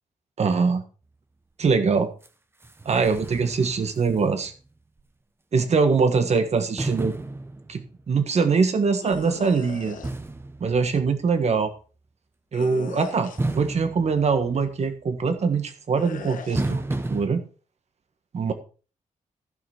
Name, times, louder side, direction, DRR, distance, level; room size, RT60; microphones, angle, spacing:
voice 1, 0.4-0.8 1.6-2.1 2.8-4.5 5.5-7.2 7.7-10.0 10.6-11.7 12.5-16.8 17.1-17.4 18.3-18.5, right 5 dB, 50° right, 8 dB, 1.5 m, -23 dB
sound 1, 2.2-2.3 2.6-4.7 5.0-5.1 6.8-8.1 10.0-11.4 13.4-14.9 16.6-17.3, right 2 dB, 15° right, 0.8 m, -32 dB
sound 2, 9.0-10.1 12.5-13.6 16.0-16.7, left 6 dB, 75° left, 1.4 m, -38 dB
15.0 x 5.9 x 4.5 m, 0.37 s
wide cardioid pair, 120°, 14 cm